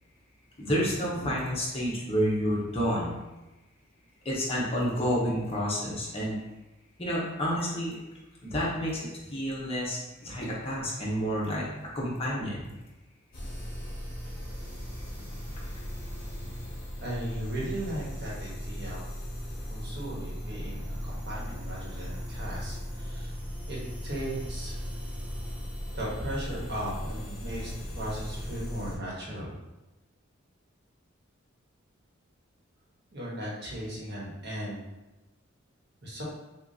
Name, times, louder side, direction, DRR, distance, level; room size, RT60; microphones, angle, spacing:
voice 1, 0.6-3.2 4.2-6.4 7.0-7.9 8.4-11.6 11.9-12.6, equal, 30° left, -5 dB, 1.1 m, -29 dB
sound 1, 13.3-29.0, equal, 50° left, 1.2 m, -37 dB
voice 2, 17.0-19.1 19.7-23.4 23.7-23.8 24.0-24.8 25.9-29.6 33.1-34.8 36.0-36.2, right 1 dB, 55° right, -5 dB, 1.3 m, -37 dB
6.4 x 2.5 x 2.7 m, 1.0 s
head